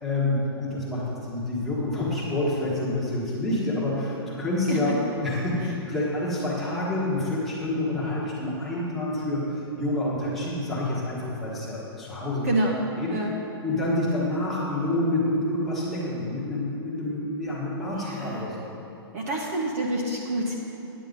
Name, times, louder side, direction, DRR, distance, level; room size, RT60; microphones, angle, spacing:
voice 1, 0.0-9.4 9.8-12.5 13.0-13.1 13.6-18.7, left 1 dB, ahead, -9 dB, 1.4 m, -28 dB
voice 2, 12.4-12.8 13.1-13.3 18.0-18.6 19.1-20.5, right 1 dB, 35° right, -1 dB, 0.9 m, -27 dB
9.8 x 8.2 x 5.2 m, 2.9 s
hypercardioid pair, 180°, 13 cm